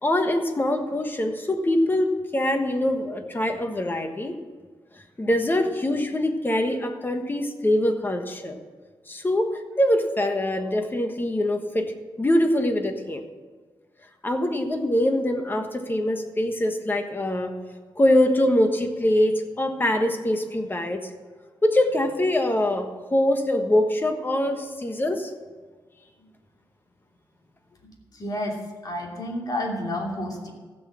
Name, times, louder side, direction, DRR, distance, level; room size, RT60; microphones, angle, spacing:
voice 1, 0.0-4.3 5.2-8.6 9.1-9.5 9.8-13.2 14.2-17.5 18.0-21.1 21.6-25.3, left 1 dB, 25° left, 5 dB, 1.3 m, -23 dB
voice 2, 28.1-28.6 28.8-30.5, left 1 dB, 45° left, -1 dB, 2.8 m, -30 dB
15.5 x 6.4 x 7.5 m, 1.4 s
wide cardioid pair, 120°, 9 cm